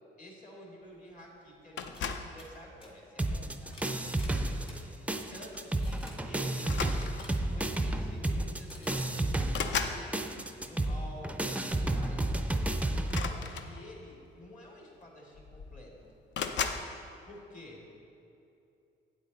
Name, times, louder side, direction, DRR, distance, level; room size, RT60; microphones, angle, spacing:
voice 1, 0.2-4.1 5.3-6.8 7.5-9.3 9.6-12.3 13.1-15.9 17.2-17.8, left 1 dB, 40° left, -2 dB, 2.2 m, -50 dB
sound 1, 1.6-1.7 1.9-2.1 2.4-2.5 2.8-2.9 3.7-4.8 5.2-5.5 5.8-6.2 7.2-7.4 8.7-9.1, left 1 dB, 25° left, 1.7 m, -52 dB
sound 2, 1.8-2.4 3.3-3.6 5.1-5.2 5.5-5.7 6.6-7.5 8.5-8.6 8.9-10.1 13.0-14.1 15.0-15.1 15.3-15.9 16.3-16.9, left 6 dB, 65° left, 0.6 m, -36 dB
sound 3, 3.2-4.8 5.1-13.3, right 1 dB, 5° right, 0.4 m, -31 dB
8.4 x 8.2 x 4.0 m, 2.7 s
cardioid pair, 90°, 20 cm